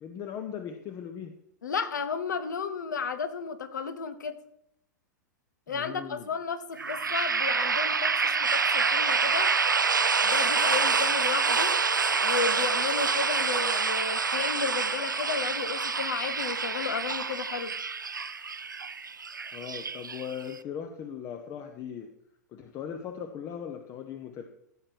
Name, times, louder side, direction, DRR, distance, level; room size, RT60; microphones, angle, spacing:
voice 1, 0.0-1.4 5.7-6.3 19.5-22.1 22.5-24.4, left 8 dB, 30° left, 7 dB, 1.0 m, -39 dB
voice 2, 1.6-4.4 5.7-9.5 10.2-11.7 12.2-17.7, left 5 dB, 70° left, 11 dB, 1.3 m, -33 dB
sound 1, 6.8-20.6, right 5 dB, 85° right, 0.5 m, -27 dB
15.0 x 7.6 x 4.8 m, 0.74 s
figure-of-eight pair, 100°, 10 cm